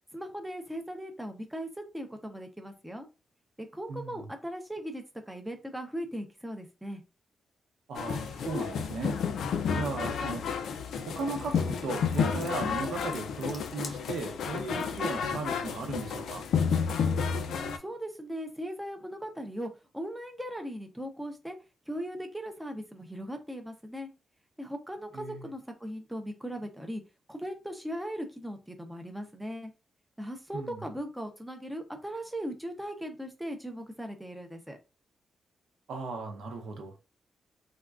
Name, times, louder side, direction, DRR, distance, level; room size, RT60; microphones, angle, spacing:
voice 1, 0.1-3.1 3.6-7.0 17.5-21.6 21.9-24.1 24.6-27.0 27.3-29.7 30.2-34.8, equal, 5° right, 0.4 m, -38 dB
voice 2, 3.9-4.2 7.9-9.2 9.7-10.4 11.1-16.4 25.1-25.5 30.5-30.8 35.9-36.9, right 4 dB, 90° right, 0.7 m, -36 dB
sound 1, 7.9-17.8, left 6 dB, 85° left, 0.3 m, -31 dB
sound 2, 11.0-15.1, left 4 dB, 50° left, 0.6 m, -49 dB
3.4 x 2.2 x 2.3 m
wide cardioid pair, 160°, 0 cm